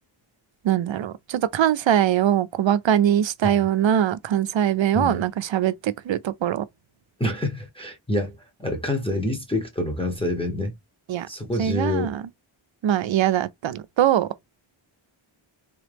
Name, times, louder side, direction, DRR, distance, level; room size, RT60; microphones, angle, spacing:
voice 1, 0.6-6.7 11.1-11.3 11.6-12.2 12.8-14.3, right 10 dB, 65° right, 0.5 m, -22 dB
voice 2, 7.2-10.7 11.3-12.1, left 1 dB, 10° left, 0.8 m, -27 dB
3.6 x 3.0 x 3.3 m
wide cardioid pair, 115°, 49 cm